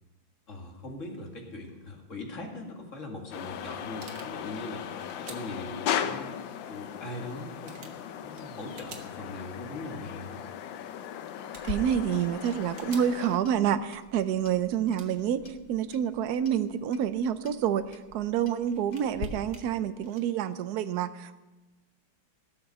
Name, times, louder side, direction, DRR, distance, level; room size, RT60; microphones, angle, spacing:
voice 1, 0.5-6.4 6.7-10.4, left 2 dB, 40° left, 1 dB, 2.3 m, -41 dB
sound 1, 3.2-3.3 3.5-5.5 6.6-6.7 7.1-7.2 7.7-9.1 9.6-9.7 11.1-11.2 11.5-13.3 14.2-14.3 14.9-15.3 16.5-17.5 18.1-18.2 18.7-19.7 20.0-20.2, right 4 dB, 50° right, 1.7 m, -51 dB
sound 2, 3.3-13.4, left 9 dB, 75° left, 1.4 m, -37 dB
Clock, 11.5-19.3, left 5 dB, 55° left, 1.3 m, -46 dB
voice 2, 11.6-21.4, right 9 dB, 70° right, 12 dB, 1.0 m, -28 dB
17.0 x 7.0 x 6.6 m, 1.1 s
omnidirectional pair, 2.2 m